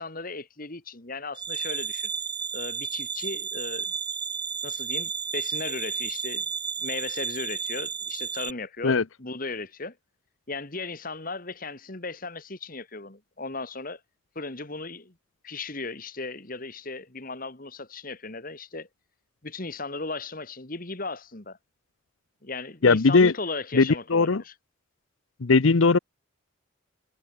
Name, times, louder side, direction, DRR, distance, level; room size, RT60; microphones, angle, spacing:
voice 1, 0.0-2.1 2.5-3.9 4.6-6.5 6.8-10.0 10.5-14.0 14.4-15.1 15.4-18.9 19.4-21.6 22.4-24.5, left 3 dB, 40° left, 2.0 m, -36 dB
sound 1, 1.4-8.5, right 6 dB, 20° right, 1.7 m, -32 dB
voice 2, 22.8-23.3 23.7-24.4 25.4-26.0, left 4 dB, 70° left, 0.7 m, -19 dB
head